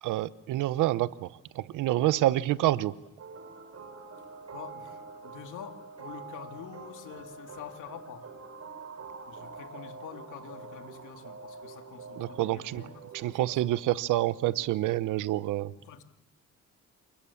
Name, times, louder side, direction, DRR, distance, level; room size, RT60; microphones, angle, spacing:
voice 1, 0.0-2.9 12.2-12.9 13.1-15.7, right 15 dB, 90° right, 0.9 m, -28 dB
sound 1, 3.2-13.8, right 4 dB, 55° right, 7.1 m, -46 dB
voice 2, 4.5-8.3 9.3-13.5 15.8-16.0, left 9 dB, 85° left, 2.6 m, -46 dB
29.0 x 24.0 x 7.2 m
cardioid pair, 90°, 30 cm